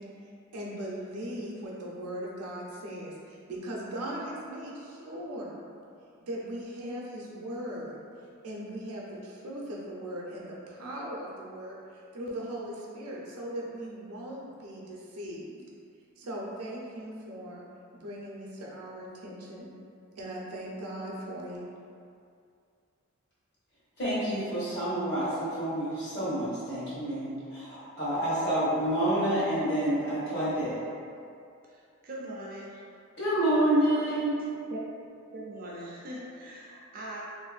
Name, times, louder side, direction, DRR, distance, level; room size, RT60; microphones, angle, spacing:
voice 1, 0.0-5.6 6.2-8.0 8.4-15.6 16.2-17.6 17.9-19.7 20.2-21.6, right 1 dB, 85° right, -4 dB, 0.6 m, -39 dB
voice 2, 24.0-30.8 33.2-34.4, right 1 dB, 50° left, -10 dB, 1.0 m, -28 dB
voice 3, 31.7-32.8 34.7-34.9 35.3-37.2, right 1 dB, 40° right, -5 dB, 0.4 m, -41 dB
3.0 x 2.5 x 2.4 m, 2.4 s
head